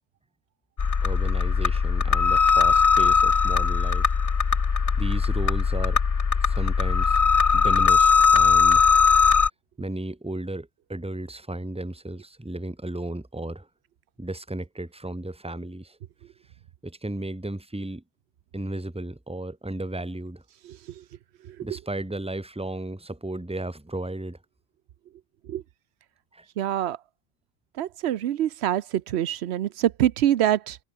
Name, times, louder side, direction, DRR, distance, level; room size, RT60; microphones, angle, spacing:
sound 1, 0.8-9.5, left 5 dB, 35° left, 0.8 m, -20 dB
voice 1, 1.0-4.1 5.0-6.0 6.4-7.2 7.5-8.9 9.8-13.7 14.2-16.0 16.8-18.0 18.5-20.4 21.6-24.4 26.3-26.5, right 1 dB, 5° right, 1.1 m, -34 dB
voice 2, 20.6-21.0 21.4-21.7 25.4-25.6 26.6-27.0 27.8-30.8, right 11 dB, 90° right, 0.9 m, -25 dB
omnidirectional pair, 1.1 m